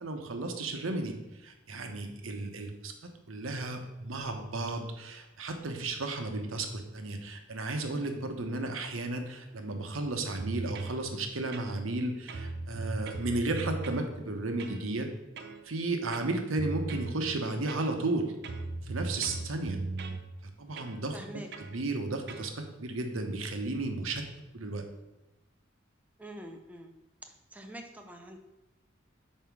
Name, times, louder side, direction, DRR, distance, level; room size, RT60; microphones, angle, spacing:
voice 1, 0.0-15.1 15.6-18.3 18.8-19.8 20.4-21.2 21.7-24.2 24.5-24.8, right 2 dB, 90° right, 5 dB, 1.0 m, -34 dB
sound 1, 10.4-11.0 11.5-12.0 12.3-14.1 14.6-14.8 15.4-15.6 16.1-17.2 17.7-18.1 18.4-20.2 20.8-21.0 21.5-21.7 22.3-22.5, right 3 dB, 55° right, 0.5 m, -38 dB
voice 2, 21.1-21.5 26.2-26.9 27.2-28.4, right 1 dB, 10° right, 4 dB, 0.5 m, -45 dB
5.5 x 4.5 x 5.9 m, 1.0 s
head